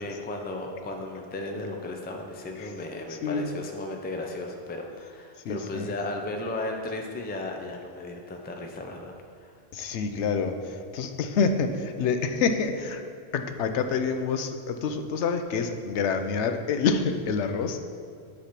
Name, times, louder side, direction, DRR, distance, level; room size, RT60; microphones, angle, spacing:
voice 1, 0.0-9.6, left 2 dB, 15° left, 2 dB, 0.4 m, -35 dB
voice 2, 3.1-3.5 5.4-5.9 9.7-13.0 13.3-17.8, left 5 dB, 85° left, 7 dB, 0.9 m, -27 dB
8.3 x 3.3 x 5.8 m, 2.2 s
omnidirectional pair, 1.1 m